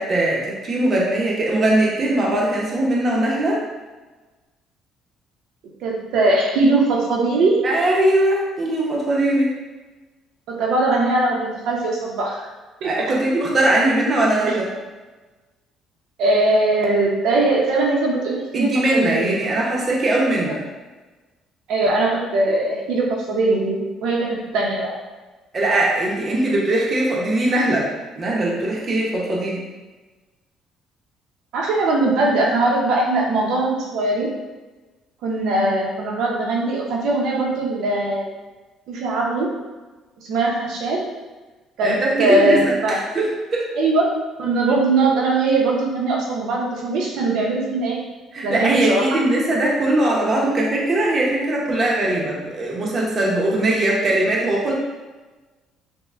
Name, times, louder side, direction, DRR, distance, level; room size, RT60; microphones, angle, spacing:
voice 1, 0.0-3.6 7.6-9.5 12.8-14.7 18.5-20.6 25.5-27.9 28.2-29.6 41.8-43.6 48.3-54.7, right 1 dB, 30° right, -4 dB, 0.7 m, -20 dB
voice 2, 5.8-7.7 10.5-12.4 12.8-12.9 16.2-19.4 20.5-20.6 21.7-24.9 31.5-34.3 35.2-38.3 38.9-39.5 40.3-41.1 41.8-43.0 43.8-44.0 44.4-48.0 48.4-49.0, right 2 dB, 70° right, -2 dB, 0.6 m, -20 dB
5.2 x 2.1 x 2.4 m, 1.2 s
cardioid pair, 150°, 0 cm